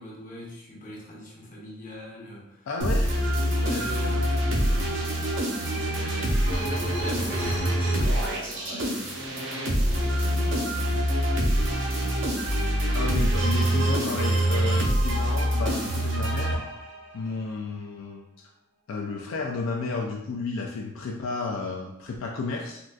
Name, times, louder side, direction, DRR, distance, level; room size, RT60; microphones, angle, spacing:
voice 1, 0.0-2.7 3.2-5.5 5.8-9.5 9.9-12.6, equal, 40° left, -4 dB, 0.8 m, -42 dB
voice 2, 2.7-3.4 12.9-16.6 17.1-18.2 18.9-22.8, left 3 dB, 65° left, 1 dB, 0.3 m, -32 dB
sound 1, 2.8-17.1, right 1 dB, 60° right, 0.7 m, -25 dB
3.7 x 2.4 x 2.3 m, 0.88 s
head